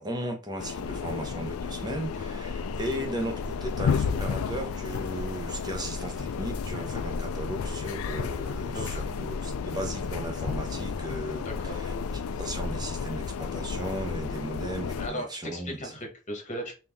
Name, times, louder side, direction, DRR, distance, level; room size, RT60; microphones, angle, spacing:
voice 1, 0.0-15.9, right 1 dB, 20° right, 0.8 m, -36 dB
sound 1, 0.6-15.1, left 5 dB, 70° left, 0.4 m, -32 dB
voice 2, 8.7-9.0 11.4-11.8 15.0-16.7, equal, 35° left, 1.2 m, -37 dB
3.6 x 2.8 x 3.5 m
head